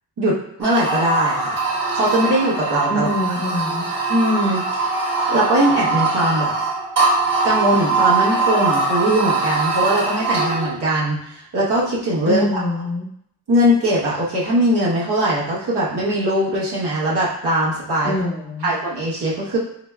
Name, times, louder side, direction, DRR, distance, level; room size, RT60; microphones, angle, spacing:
voice 1, 0.2-1.7 1.9-3.1 4.1-4.8 5.3-6.5 7.4-12.6 13.5-18.1 18.6-19.6, equal, 85° right, -7 dB, 1.1 m, -20 dB
sound 1, 0.6-10.8, right 3 dB, 55° right, 1.3 m, -21 dB
voice 2, 2.9-3.9 12.2-13.1 18.0-18.7, equal, 30° left, 0 dB, 0.6 m, -24 dB
3.9 x 3.5 x 2.2 m, 0.72 s
wide cardioid pair, 95°, 39 cm